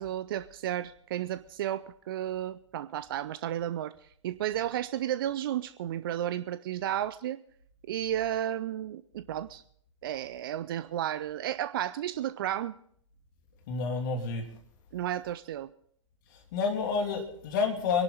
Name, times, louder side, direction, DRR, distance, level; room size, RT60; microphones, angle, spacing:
voice 1, 0.0-3.9 4.2-7.4 7.9-9.6 10.0-12.7 14.9-15.7, right 11 dB, 45° right, 15 dB, 0.5 m, -33 dB
voice 2, 13.7-14.4 16.5-18.0, left 5 dB, 40° left, 3 dB, 3.0 m, -29 dB
23.5 x 11.5 x 4.0 m, 0.64 s
figure-of-eight pair, 115°, 16 cm